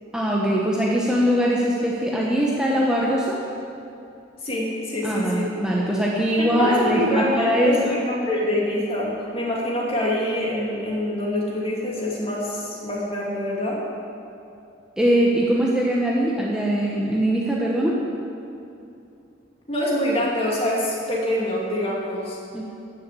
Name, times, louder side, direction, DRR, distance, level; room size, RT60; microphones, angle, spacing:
voice 1, 0.1-3.4 5.0-8.0 15.0-18.0 22.5-22.6, equal, 5° right, -4 dB, 1.0 m, -21 dB
voice 2, 4.4-5.4 6.5-13.8 19.7-22.4, left 1 dB, 30° left, -4 dB, 2.6 m, -25 dB
13.5 x 6.9 x 8.4 m, 2.7 s
head